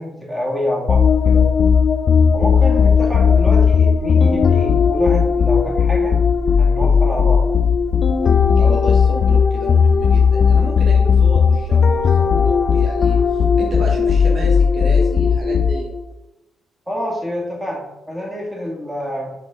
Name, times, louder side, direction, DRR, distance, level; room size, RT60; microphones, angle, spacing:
voice 1, 0.0-1.5 2.3-6.2 6.6-7.5 16.9-19.3, left 1 dB, 10° right, -3 dB, 2.0 m, -27 dB
sound 1, 0.9-16.0, left 6 dB, 50° left, 0.5 m, -15 dB
voice 2, 8.6-15.9, right 2 dB, 55° right, 0 dB, 1.1 m, -31 dB
7.0 x 4.1 x 3.7 m, 0.96 s
cardioid pair, 90°, 0 cm